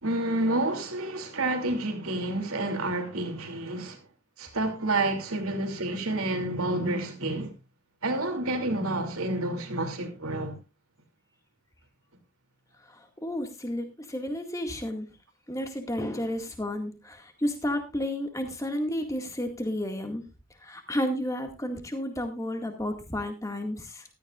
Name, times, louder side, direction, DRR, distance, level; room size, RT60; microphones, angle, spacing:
voice 1, 0.0-4.0 4.4-7.5 8.0-10.6, right 2 dB, 85° right, 2.9 m, -29 dB
voice 2, 13.2-15.1 15.5-20.2 20.6-24.0, left 1 dB, 15° left, 2.0 m, -32 dB
15.5 x 13.5 x 2.5 m
head